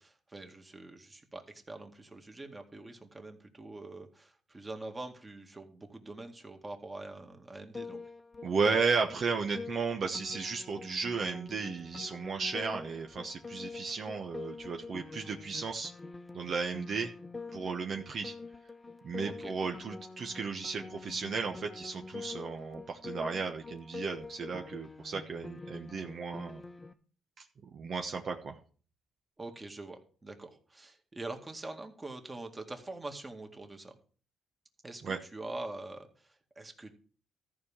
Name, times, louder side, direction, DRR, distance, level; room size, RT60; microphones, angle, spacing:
voice 1, 0.0-8.0 19.2-19.5 29.4-34.0 34.8-37.0, right 2 dB, 20° right, 4 dB, 2.1 m, -44 dB
Piano, 7.7-26.9, left 4 dB, 20° left, 1.1 m, -46 dB
voice 2, 8.4-15.9 16.3-17.1 17.5-18.3 19.0-26.6 27.4-27.5 27.7-28.6 35.0-35.2, right 5 dB, 55° right, 3 dB, 1.1 m, -34 dB
14.0 x 4.9 x 7.3 m, 0.42 s
cardioid pair, 90°, 0 cm